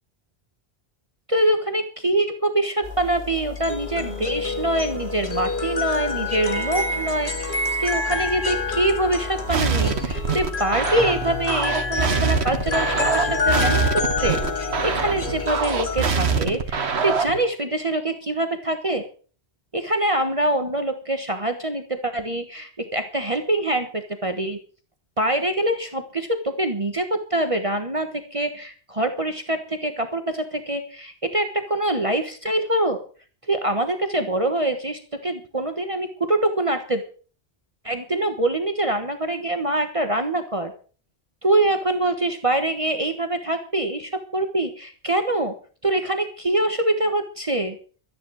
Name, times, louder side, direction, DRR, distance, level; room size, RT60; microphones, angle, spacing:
voice 1, 1.3-19.0 19.7-24.6 25.2-33.0 33.5-37.0 37.8-40.7 41.4-45.5 45.8-47.7, right 1 dB, 30° right, 7 dB, 1.4 m, -24 dB
sound 1, 2.8-16.0, left 3 dB, 50° left, 2.2 m, -27 dB
sound 2, 9.5-17.4, right 5 dB, 75° right, 1.6 m, -24 dB
13.5 x 10.5 x 6.3 m, 0.40 s
omnidirectional pair, 1.1 m